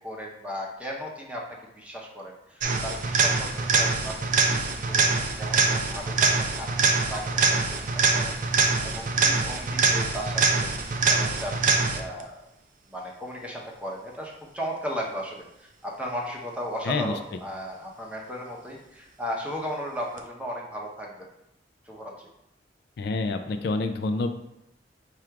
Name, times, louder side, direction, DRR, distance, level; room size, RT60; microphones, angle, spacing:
voice 1, 0.0-4.2 4.5-10.7 11.1-12.3 12.9-21.2 21.8-22.3, equal, 10° right, -1 dB, 0.7 m, -36 dB
sound 1, 2.6-12.2 20.2-20.3, right 4 dB, 45° right, 0.4 m, -24 dB
voice 2, 23.0-24.3, left 3 dB, 65° left, 7 dB, 0.4 m, -27 dB
4.7 x 2.5 x 4.4 m, 0.85 s
head